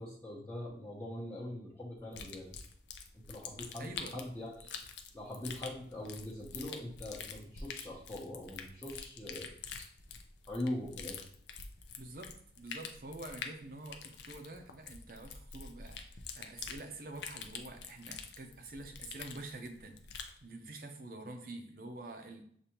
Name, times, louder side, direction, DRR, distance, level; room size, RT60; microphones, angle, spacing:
voice 1, 0.0-2.5 3.1-4.7 5.1-9.5 10.5-11.2, left 1 dB, 15° left, -7 dB, 0.8 m, -42 dB
sound 1, 2.1-20.4, left 6 dB, 85° left, 0.5 m, -46 dB
voice 2, 3.8-4.2 12.0-22.4, right 2 dB, 55° right, 5 dB, 0.6 m, -47 dB
6.7 x 2.7 x 2.9 m, 0.64 s
head